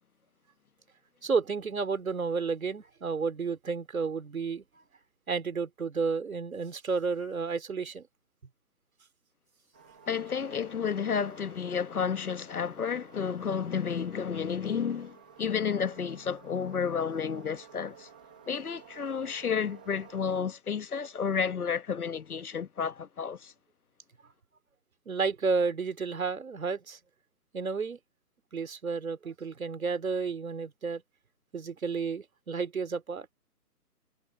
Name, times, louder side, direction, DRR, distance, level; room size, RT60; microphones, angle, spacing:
voice 1, 1.2-4.6 5.3-8.1 25.1-27.0 27.5-28.0 28.5-31.0 31.5-33.3, right 5 dB, 55° right, 3.0 m, -31 dB
sound 1, 9.7-20.2, right 7 dB, 5° right, 1.1 m, -55 dB
voice 2, 10.1-18.1 18.5-23.5, left 6 dB, 65° left, 1.3 m, -31 dB
hypercardioid pair, 175°, 48 cm